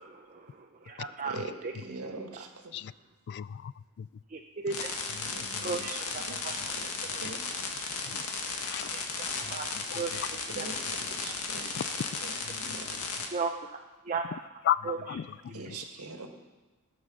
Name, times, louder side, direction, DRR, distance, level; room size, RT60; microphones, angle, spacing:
voice 1, 0.0-1.4 1.6-1.7 2.0-2.4 4.3-5.1 5.6-6.5 7.1-7.2 8.9-9.7 9.9-10.3 10.6-10.7 13.3-14.4 14.8-15.0, right 4 dB, 35° right, 2 dB, 0.7 m, -36 dB
voice 2, 1.2-2.7 5.2-6.9 7.2-7.9 10.5-11.8 12.2-12.9 15.5-16.3, right 3 dB, 75° right, 4 dB, 1.7 m, -43 dB
voice 3, 3.3-4.1 4.7-4.8 5.5-5.9 6.3-6.7 7.1-7.3 8.1-8.2 8.6-8.9 9.4-10.2 11.8-11.9 12.5-12.8 14.6-15.8, left 11 dB, 50° left, 18 dB, 0.3 m, -36 dB
sound 1, 4.7-13.3, left 4 dB, 85° left, 1.9 m, -35 dB
20.0 x 7.2 x 6.2 m, 1.2 s
head